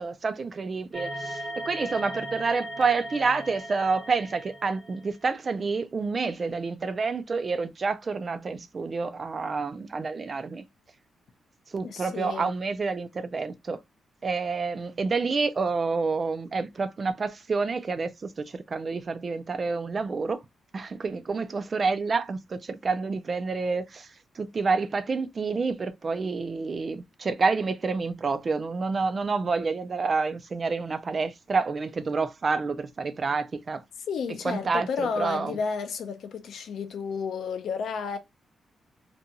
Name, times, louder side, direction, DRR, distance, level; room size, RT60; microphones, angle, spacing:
voice 1, 0.0-10.6 11.7-13.8 14.2-20.4 20.7-24.1 24.4-33.8 34.4-34.9 35.2-35.6, right 4 dB, 30° right, 0.3 m, -28 dB
sound 1, 0.9-5.2, right 1 dB, 10° right, 1.0 m, -37 dB
voice 2, 11.8-12.5 34.1-38.2, left 6 dB, 65° left, 0.5 m, -32 dB
2.6 x 2.3 x 2.7 m
wide cardioid pair, 180°, 0 cm